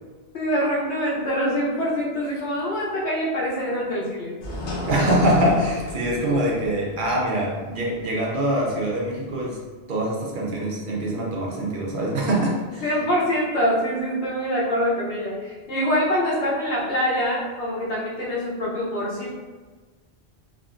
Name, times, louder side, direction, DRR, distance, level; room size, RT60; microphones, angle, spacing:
voice 1, 0.3-4.7 12.8-19.4, equal, 90° left, -6 dB, 1.1 m, -25 dB
sound 1, 4.4-9.6, left 1 dB, 60° left, 0.7 m, -34 dB
voice 2, 4.9-9.6 9.9-12.8, right 1 dB, 60° right, -2 dB, 0.6 m, -24 dB
3.3 x 2.1 x 2.4 m, 1.3 s
omnidirectional pair, 1.1 m